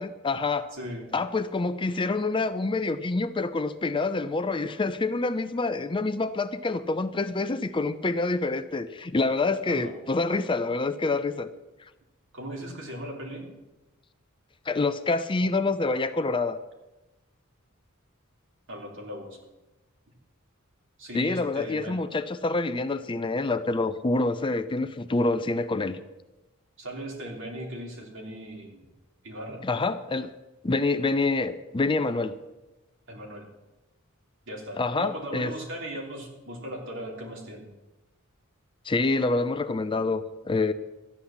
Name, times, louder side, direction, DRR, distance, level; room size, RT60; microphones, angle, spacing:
voice 1, 0.0-0.7 1.1-11.5 14.7-16.6 21.1-26.0 29.6-30.3 30.6-32.4 34.8-35.5 38.8-40.7, left 3 dB, 25° left, 11 dB, 0.5 m, -27 dB
voice 2, 0.7-1.1 9.7-9.9 12.3-13.5 18.7-19.4 21.0-22.0 26.8-28.8 29.2-29.7 33.1-33.5 34.5-37.7, equal, 60° right, 0 dB, 3.2 m, -38 dB
13.0 x 9.8 x 7.2 m, 1.1 s
head